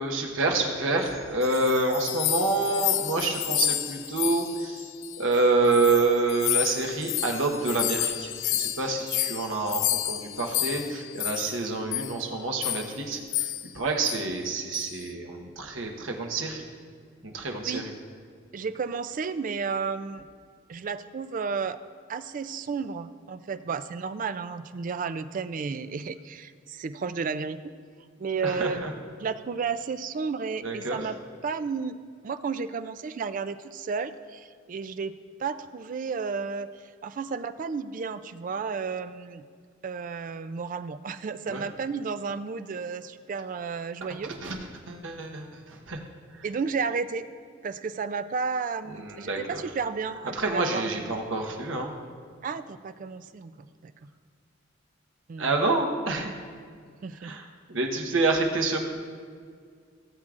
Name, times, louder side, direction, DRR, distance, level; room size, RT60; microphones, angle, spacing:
voice 1, 0.0-4.9 5.2-16.6 17.2-17.9 28.4-28.9 30.6-31.1 41.5-41.7 44.4-44.6 44.9-46.0 46.4-46.5 48.9-49.6 50.3-51.9 55.4-56.4 57.2-58.8, right 3 dB, 70° right, 2 dB, 1.1 m, -27 dB
sound 1, 1.1-5.4 5.7-11.6 11.9-12.2 12.6-12.9 13.3-13.8 14.0-14.2 14.7-15.0, left 14 dB, 65° left, 0.4 m, -30 dB
voice 2, 18.5-20.2 20.7-21.8 22.1-27.6 28.2-28.8 29.2-31.2 31.4-32.0 32.2-35.1 35.4-36.7 37.0-39.4 39.8-44.3 46.4-47.2 47.6-51.2 52.4-53.9 55.3-55.5 57.0-57.3, right 5 dB, 40° right, 11 dB, 0.3 m, -32 dB
17.0 x 7.4 x 2.5 m, 2.1 s
head